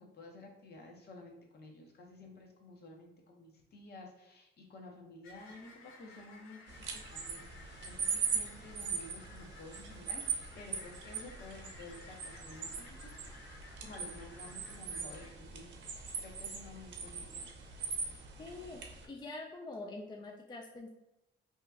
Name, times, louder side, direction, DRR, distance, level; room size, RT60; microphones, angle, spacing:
voice 1, 0.0-13.2 13.8-15.7 16.2-17.5, left 2 dB, 55° left, 1 dB, 0.9 m, -52 dB
sound 1, 5.2-15.3, left 3 dB, 90° left, 0.6 m, -56 dB
sound 2, 6.7-19.1, right 5 dB, 65° right, 0.7 m, -41 dB
voice 2, 18.4-20.9, left 2 dB, 20° left, 2 dB, 0.4 m, -45 dB
2.9 x 2.2 x 3.4 m, 0.91 s
cardioid pair, 90°, 20 cm